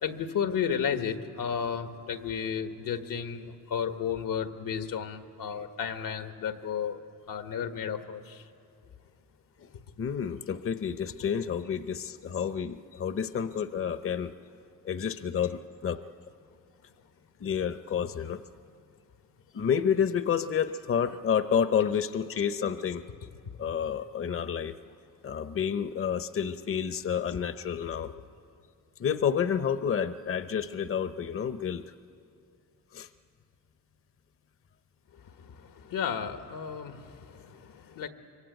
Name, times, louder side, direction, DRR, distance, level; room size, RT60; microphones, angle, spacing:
voice 1, 0.0-7.0 7.3-8.4 15.4-15.5 20.7-21.2 22.4-22.5 27.3-27.4 27.7-28.1 35.1-38.1, left 7 dB, 80° left, 7 dB, 1.6 m, -33 dB
voice 2, 10.0-14.3 14.8-16.0 17.4-18.4 19.5-23.0 23.6-24.8 25.2-28.1 29.0-31.9 32.9-33.1, left 7 dB, 40° left, 11 dB, 0.8 m, -29 dB
25.0 x 23.5 x 9.3 m, 2.5 s
cardioid pair, 95°, 33 cm